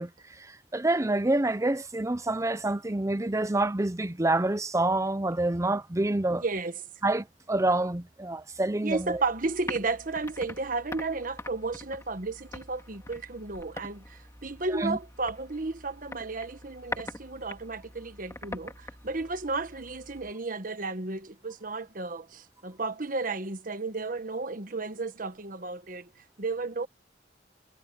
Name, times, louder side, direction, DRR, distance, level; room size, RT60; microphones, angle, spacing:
voice 1, 0.0-6.4 7.0-9.2 14.8-15.0, right 2 dB, 15° right, 0.7 m, -27 dB
voice 2, 6.3-6.8 8.8-26.9, right 3 dB, 50° right, 1.3 m, -33 dB
sound 1, 8.9-20.3, left 2 dB, 15° left, 2.4 m, -44 dB
head